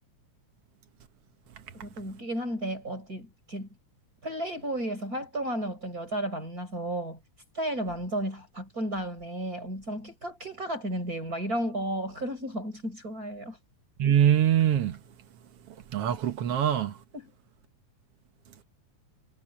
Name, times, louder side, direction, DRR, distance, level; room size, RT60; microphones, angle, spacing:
voice 1, 1.7-3.7 4.2-7.2 7.5-13.6 17.1-17.3, right 1 dB, 25° right, 5.8 m, -33 dB
voice 2, 14.0-15.0 15.9-16.9, right 10 dB, 60° right, 1.8 m, -23 dB
omnidirectional pair, 3.5 m